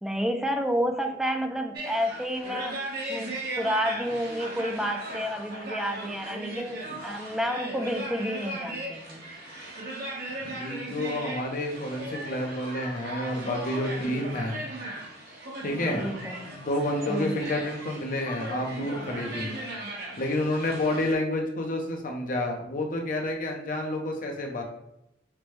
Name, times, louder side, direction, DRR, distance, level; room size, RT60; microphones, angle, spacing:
voice 1, 0.0-2.8 3.1-9.2 15.9-16.3 17.1-17.4, equal, 5° right, 5 dB, 0.4 m, -30 dB
sound 1, 1.7-21.1, right 1 dB, 60° right, 1.3 m, -37 dB
voice 2, 10.4-14.5 15.6-16.1 16.5-19.5 20.2-24.6, left 1 dB, 45° left, 2 dB, 0.7 m, -29 dB
5.9 x 2.2 x 3.2 m, 0.84 s
head